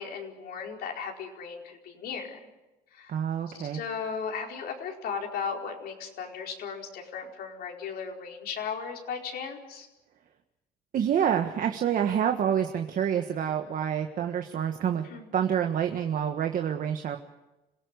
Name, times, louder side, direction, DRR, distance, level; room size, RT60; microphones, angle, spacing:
voice 1, 0.0-2.4 2.9-3.1 3.6-9.9 15.1-15.2, left 6 dB, 65° left, 1 dB, 4.6 m, -36 dB
voice 2, 3.1-3.8 10.9-15.1 15.3-17.2, right 8 dB, 55° right, 5 dB, 1.5 m, -27 dB
27.0 x 17.0 x 8.2 m, 1.0 s
cardioid pair, 110°, 17 cm